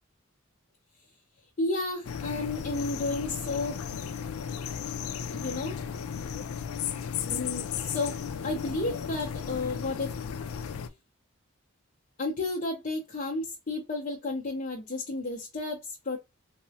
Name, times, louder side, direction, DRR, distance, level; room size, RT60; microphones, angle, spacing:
voice 1, 1.6-3.8 5.3-5.7 7.3-8.2 8.4-10.1 12.2-16.2, left 2 dB, 40° left, 0.6 m, -32 dB
sound 1, 2.0-10.9, left 7 dB, 90° left, 0.4 m, -35 dB
3.6 x 2.0 x 2.7 m
head